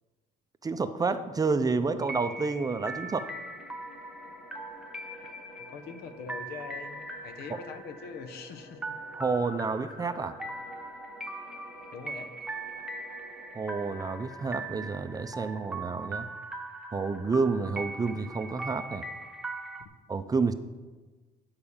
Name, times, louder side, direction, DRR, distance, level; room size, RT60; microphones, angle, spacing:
voice 1, 0.6-3.3 7.5-7.6 9.1-10.4 13.5-16.3 16.9-19.0 20.1-20.5, right 4 dB, 20° right, 10 dB, 0.5 m, -29 dB
sound 1, 2.0-19.9, right 2 dB, 5° right, 1.1 m, -41 dB
sound 2, 3.3-14.0, equal, 55° left, 3.0 m, -52 dB
voice 2, 5.7-9.0 11.9-12.5, left 5 dB, 70° left, 10 dB, 1.0 m, -43 dB
10.5 x 4.9 x 7.1 m, 1.3 s
cardioid pair, 110°, 17 cm